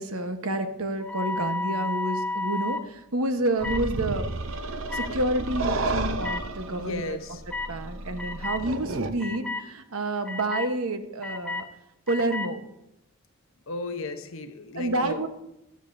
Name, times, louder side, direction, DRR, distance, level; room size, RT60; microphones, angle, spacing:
voice 1, 0.0-4.3 4.9-7.2 7.7-11.7 12.1-12.6 14.7-15.3, right 1 dB, 85° right, 7 dB, 1.1 m, -29 dB
sound 1, 1.0-2.8 3.6-3.8 4.9-5.1 6.2-6.4 7.5-7.7 8.2-8.6 9.2-9.6 10.3-10.7 11.2-11.6 12.1-12.5, left 2 dB, 5° left, 0.6 m, -31 dB
sound 2, 3.6-9.1, right 2 dB, 65° right, 0.7 m, -32 dB
voice 2, 6.8-7.4 13.7-15.2, left 2 dB, 70° left, 7 dB, 1.0 m, -34 dB
14.0 x 11.5 x 2.7 m, 0.84 s
head